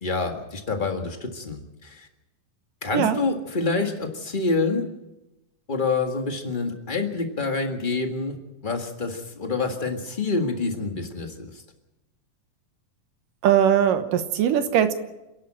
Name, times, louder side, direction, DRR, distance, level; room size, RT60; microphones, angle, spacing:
voice 1, 0.0-2.1 2.8-4.8 5.7-8.4 8.6-11.5, left 3 dB, 40° left, 4 dB, 0.7 m, -27 dB
voice 2, 13.4-14.9, right 9 dB, 75° right, 9 dB, 2.7 m, -20 dB
27.5 x 11.5 x 8.7 m, 0.98 s
omnidirectional pair, 4.1 m